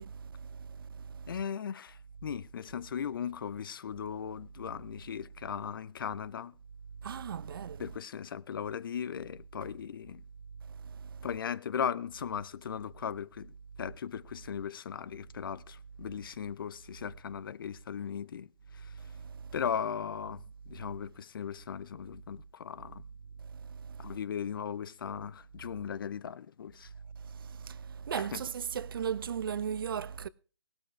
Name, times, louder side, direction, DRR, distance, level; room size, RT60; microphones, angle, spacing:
voice 1, 0.0-1.3 7.0-7.9 10.8-11.3 19.1-19.5 23.7-24.2 27.2-30.3, right 7 dB, 50° right, 0.7 m, -38 dB
voice 2, 1.3-6.6 7.8-10.2 11.2-19.1 19.5-23.0 24.0-26.9 28.1-28.4, left 8 dB, 50° left, 0.7 m, -38 dB
18.5 x 12.5 x 3.3 m
figure-of-eight pair, 145°, 15 cm